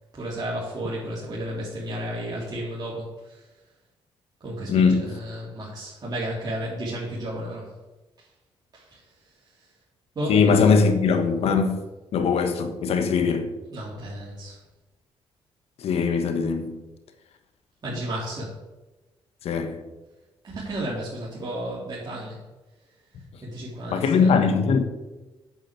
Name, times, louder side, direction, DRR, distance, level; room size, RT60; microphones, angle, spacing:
voice 1, 0.1-3.5 4.4-7.7 8.7-9.0 10.2-10.4 13.7-14.6 17.8-18.5 20.4-22.4 23.4-24.3, right 1 dB, 40° right, 3.7 m, -33 dB
voice 2, 4.7-5.1 10.3-11.8 12.1-13.5 15.8-16.8 19.4-19.8 23.9-24.9, left 5 dB, 75° left, 1.4 m, -21 dB
8.8 x 6.0 x 8.3 m
cardioid pair, 70°, 10 cm